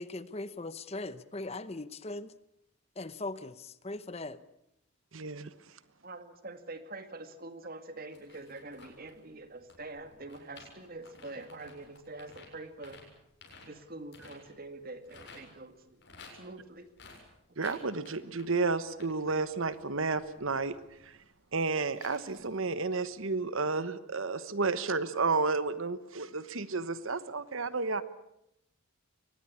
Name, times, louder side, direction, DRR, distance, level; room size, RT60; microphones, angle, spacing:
voice 1, 0.0-2.3 3.0-4.4, left 2 dB, 30° left, 0.8 m, -39 dB
voice 2, 5.1-5.5 17.6-20.8 21.0-21.2 21.5-28.0, right 4 dB, 65° right, 1.1 m, -31 dB
voice 3, 6.0-13.0 13.6-16.0 16.4-16.9, right 2 dB, 45° right, 2.2 m, -45 dB
sound 1, 8.1-15.4 15.7-22.8 23.1-23.2, left 4 dB, 55° left, 7.3 m, -55 dB
23.5 x 19.5 x 8.6 m
head